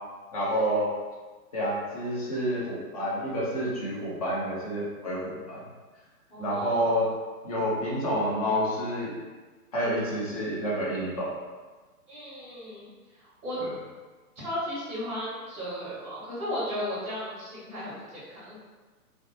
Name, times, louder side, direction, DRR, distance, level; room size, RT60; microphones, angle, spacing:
voice 1, 0.3-0.9 1.5-5.6 6.4-7.0 7.4-9.1 9.7-11.3 13.6-13.7, equal, 25° left, -7 dB, 0.5 m, -29 dB
voice 2, 6.3-7.1 12.1-12.9 13.2-13.6 14.4-18.6, left 1 dB, 15° right, -9 dB, 1.2 m, -35 dB
2.9 x 2.1 x 2.6 m, 1.3 s
hypercardioid pair, 140°, 46 cm